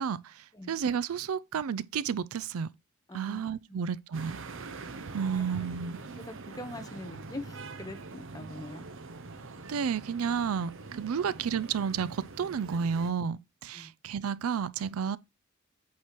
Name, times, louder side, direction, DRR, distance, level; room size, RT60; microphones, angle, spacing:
voice 1, 0.0-2.7 3.1-4.4 5.1-6.0 9.7-15.2, right 6 dB, 80° right, 0.4 m, -31 dB
voice 2, 3.1-3.4 6.2-8.8 13.7-13.9, left 2 dB, 15° left, 0.9 m, -43 dB
sound 1, 4.1-13.1, right 3 dB, 60° right, 0.8 m, -44 dB
8.5 x 3.1 x 5.8 m
head